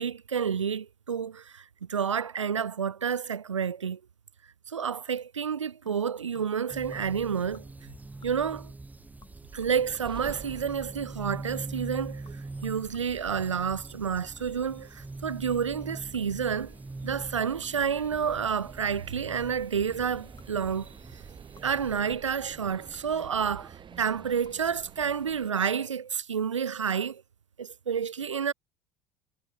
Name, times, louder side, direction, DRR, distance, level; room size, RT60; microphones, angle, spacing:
voice 1, 0.0-4.0 4.7-7.6 8.2-8.7 9.5-16.7 17.0-21.2 21.6-27.2 27.6-28.5, right 7 dB, 85° right, 0.4 m, -30 dB
sound 1, 5.9-6.7 6.9-7.3 7.5-7.9 8.2-8.7 9.2-11.6 12.3-14.7 15.3-16.6 17.1-17.4 17.6-19.3 19.9-20.9 21.6-23.3 23.9-24.1 24.4-24.5, left 6 dB, 25° left, 6.9 m, -58 dB
sound 2, 6.7-22.0, right 2 dB, 10° right, 1.1 m, -43 dB
sound 3, 9.5-25.5, right 8 dB, 30° right, 2.7 m, -50 dB
figure-of-eight pair, 65°, 15 cm